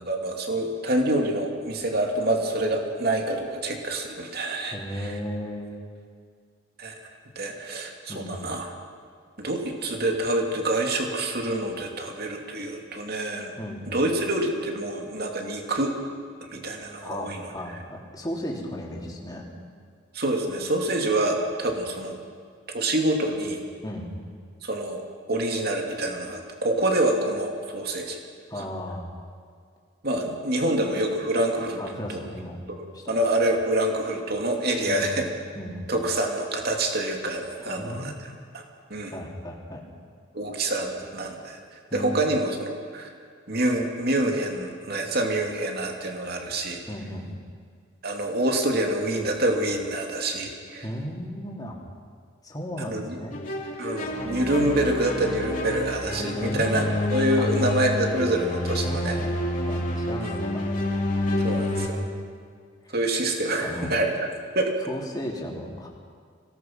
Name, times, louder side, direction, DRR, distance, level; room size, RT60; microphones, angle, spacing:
voice 1, 0.1-5.2 6.8-6.9 7.4-8.7 9.4-13.5 13.9-15.9 16.4-17.5 20.1-22.2 22.7-23.6 24.6-25.0 25.3-28.2 28.6-28.7 30.0-31.8 32.1-32.2 32.7-35.3 35.9-38.1 38.5-38.6 38.9-39.1 40.3-41.6 41.9-43.1 43.5-46.8 48.0-50.9 52.9-53.2 53.8-56.8 57.1-59.2 60.2-60.4 61.4-62.0 62.9-64.3 64.5-64.7, right 1 dB, 50° right, 2 dB, 2.7 m, -26 dB
voice 2, 4.7-5.7 8.1-8.4 13.6-13.8 17.0-19.4 23.8-24.1 28.5-29.1 31.8-32.6 32.9-33.2 34.9-35.1 35.5-35.8 37.6-38.1 39.1-39.8 41.9-42.3 46.9-47.4 50.8-51.8 52.4-53.4 56.3-56.8 57.4-57.5 58.8-59.3 59.7-60.6 61.7-62.2 62.8-63.0 63.6-63.9 64.9-65.9, equal, 20° left, -1 dB, 3.2 m, -35 dB
sound 1, 53.3-61.9, left 1 dB, 40° left, 2.8 m, -28 dB
25.5 x 18.0 x 6.0 m, 2.1 s
head